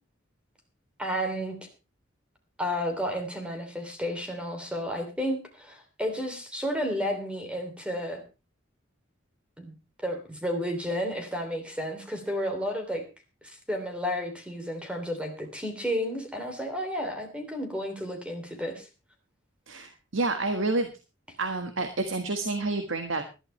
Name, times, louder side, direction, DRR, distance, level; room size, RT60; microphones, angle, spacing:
voice 1, 1.0-1.6 2.6-8.2 9.6-9.7 10.0-13.0 13.4-18.9, equal, 5° right, 4 dB, 3.0 m, -32 dB
voice 2, 19.7-20.9 21.4-23.2, right 3 dB, 80° right, 6 dB, 1.6 m, -29 dB
20.0 x 12.0 x 3.3 m, 0.30 s
head